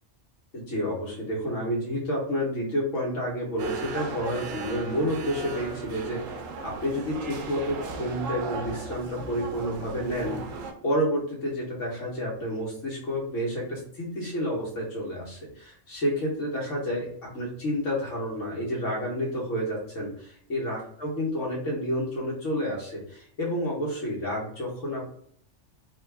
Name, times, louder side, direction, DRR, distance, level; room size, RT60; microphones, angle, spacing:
voice 1, 0.5-10.4 10.8-25.0, equal, 85° left, -4 dB, 1.8 m, -30 dB
sound 1, 3.6-10.7, right 4 dB, 85° right, 1.0 m, -36 dB
3.7 x 2.4 x 3.4 m, 0.62 s
omnidirectional pair, 1.3 m